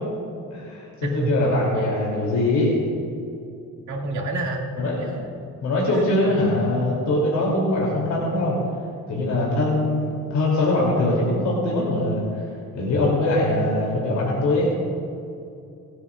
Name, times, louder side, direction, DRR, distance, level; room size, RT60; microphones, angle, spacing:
voice 1, 0.5-2.7 4.8-5.1 5.6-8.6 9.1-12.2 12.7-14.7, left 1 dB, 70° left, -4 dB, 2.9 m, -22 dB
voice 2, 1.0-1.6 3.9-4.9 5.9-6.0 9.4-9.5, right 2 dB, 75° right, 0 dB, 2.3 m, -28 dB
27.5 x 9.6 x 2.4 m, 2.6 s
cardioid pair, 90°, 30 cm